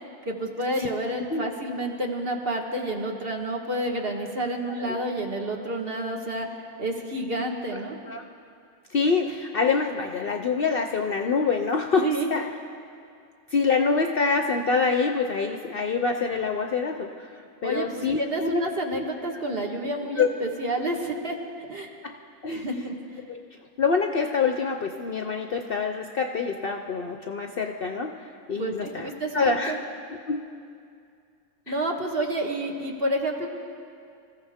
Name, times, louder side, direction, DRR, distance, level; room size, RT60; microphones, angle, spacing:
voice 1, 0.3-6.5 6.8-8.0 12.0-12.3 17.6-17.9 18.2-21.3 21.7-21.9 22.5-22.9 28.6-29.8 31.7-33.5, right 1 dB, 45° right, 1 dB, 1.6 m, -29 dB
voice 2, 8.9-12.5 13.5-18.6 20.2-20.3 22.0-22.1 22.4-22.9 23.3-23.4 23.8-28.1 28.5-29.7 30.1-30.4 31.7-31.8, left 4 dB, 55° left, 4 dB, 0.7 m, -26 dB
26.0 x 15.0 x 3.5 m, 2.3 s
omnidirectional pair, 1.4 m